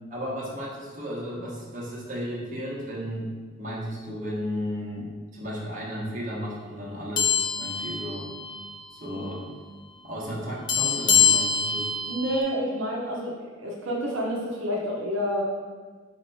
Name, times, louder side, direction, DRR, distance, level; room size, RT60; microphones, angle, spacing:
voice 1, 0.0-3.3 3.6-8.3 8.9-9.5 10.0-11.9, equal, 40° right, -5 dB, 1.0 m, -34 dB
sound 1, 7.2-8.8 9.1-9.3 10.7-12.4, left 7 dB, 20° left, 0.3 m, -24 dB
voice 2, 12.1-15.4, equal, 75° right, -3 dB, 0.7 m, -29 dB
4.5 x 2.9 x 4.1 m, 1.5 s
head